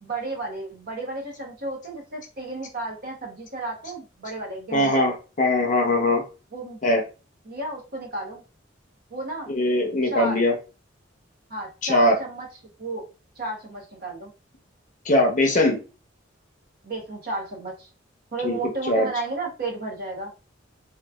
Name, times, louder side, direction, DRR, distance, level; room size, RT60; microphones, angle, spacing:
voice 1, 0.0-5.2 6.5-6.8 7.4-8.4 9.1-9.5 10.0-10.4 11.5-12.5 12.8-13.0 13.4-14.3 16.8-17.9 18.3-20.3, right 2 dB, 50° right, 0 dB, 0.9 m, -33 dB
voice 2, 4.7-6.2 6.8-7.0 9.5-10.5 11.8-12.2 15.1-15.8 18.4-18.6 18.9-19.1, left 1 dB, 40° left, 3 dB, 0.7 m, -21 dB
3.1 x 2.3 x 2.2 m, 0.32 s
head